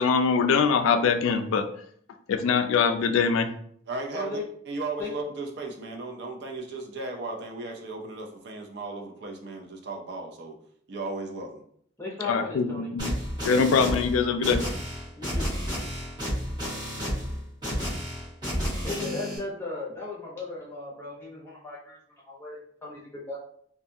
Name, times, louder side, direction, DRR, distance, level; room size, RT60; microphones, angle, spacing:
voice 1, 0.0-1.7 2.3-3.5 12.2-13.1 13.4-14.6, left 5 dB, 80° left, 7 dB, 0.3 m, -23 dB
voice 2, 3.9-10.6 10.9-11.6, right 3 dB, 55° right, 2 dB, 0.4 m, -36 dB
voice 3, 12.0-12.9 15.2-15.5 18.8-22.0 22.3-23.4, left 3 dB, 10° left, -6 dB, 0.7 m, -36 dB
sound 1, 13.0-19.4, equal, 20° right, 1.1 m, -31 dB
2.6 x 2.3 x 2.6 m, 0.63 s
head